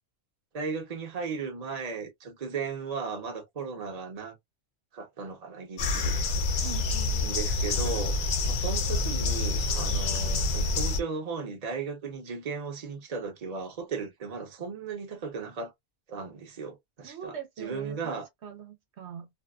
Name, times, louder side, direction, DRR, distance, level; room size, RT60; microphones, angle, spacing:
voice 1, 0.5-4.4 4.9-6.2 7.2-8.1 8.5-15.7 16.1-18.3, right 5 dB, 40° right, 0.9 m, -36 dB
sound 1, 5.8-11.0, left 3 dB, 55° left, 0.7 m, -27 dB
voice 2, 6.6-7.2 17.0-19.3, right 7 dB, 75° right, 1.1 m, -42 dB
2.7 x 2.3 x 2.3 m
omnidirectional pair, 1.1 m